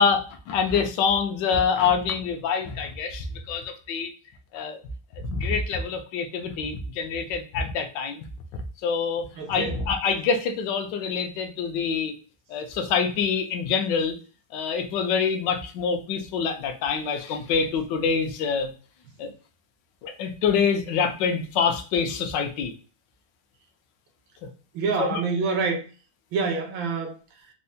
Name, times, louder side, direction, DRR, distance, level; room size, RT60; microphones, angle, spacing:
voice 1, 0.0-4.1 4.5-4.8 5.2-8.2 8.8-12.1 12.5-14.1 14.5-18.7 19.2-19.3 20.0-22.7 25.0-25.2, left 6 dB, 75° left, 1.2 m, -26 dB
voice 2, 9.4-9.9 24.7-25.8 26.3-27.2, right 4 dB, 80° right, 1.5 m, -26 dB
4.5 x 2.1 x 2.6 m
omnidirectional pair, 2.0 m